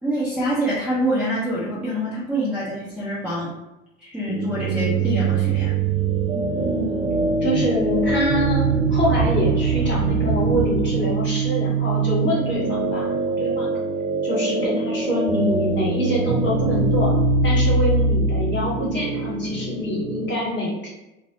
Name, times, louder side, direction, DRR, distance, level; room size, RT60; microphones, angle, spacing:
voice 1, 0.0-3.5 4.0-5.7, right 1 dB, ahead, -12 dB, 0.9 m, -25 dB
sound 1, 4.3-20.3, right 3 dB, 75° right, 0.7 m, -23 dB
sound 2, 5.1-11.5, right 2 dB, 25° right, 1.2 m, -29 dB
voice 2, 6.5-6.9 7.4-13.1 13.4-13.7 14.2-17.1 17.4-20.9, equal, 25° left, -6 dB, 1.5 m, -25 dB
2.5 x 2.2 x 2.8 m, 0.95 s
figure-of-eight pair, 70°, 41 cm